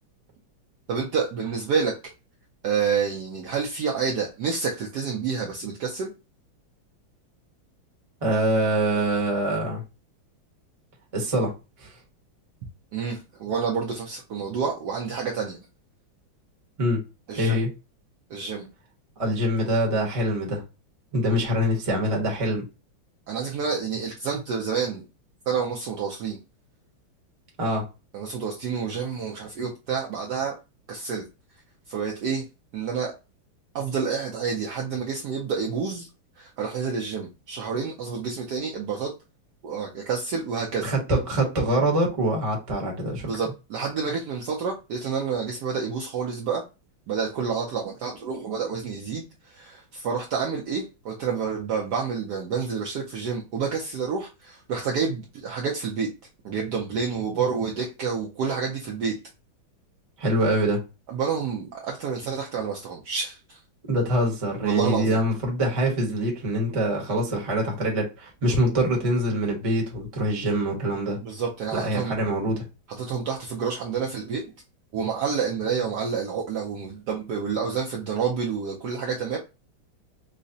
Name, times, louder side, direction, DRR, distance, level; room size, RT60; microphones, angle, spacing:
voice 1, 0.9-2.0 2.6-6.1 12.9-15.6 17.3-17.6 18.3-18.7 23.3-25.1 25.5-26.4 28.1-30.6 30.9-31.2 31.9-32.5 32.7-33.1 33.7-36.1 36.4-39.1 39.6-40.9 43.2-46.6 47.1-56.1 56.4-59.2 61.1-63.6 64.6-65.2 71.2-72.1 73.0-74.4 74.9-79.4, right 6 dB, 70° right, 1.0 m, -29 dB
voice 2, 8.2-9.8 11.1-11.5 11.8-11.9 16.8-17.0 17.4-17.7 19.2-20.6 21.1-22.6 27.6-27.8 40.8-43.3 60.2-60.8 63.9-71.2 71.7-72.6, right 1 dB, 25° right, 0.7 m, -24 dB
4.7 x 2.1 x 2.6 m
omnidirectional pair, 2.2 m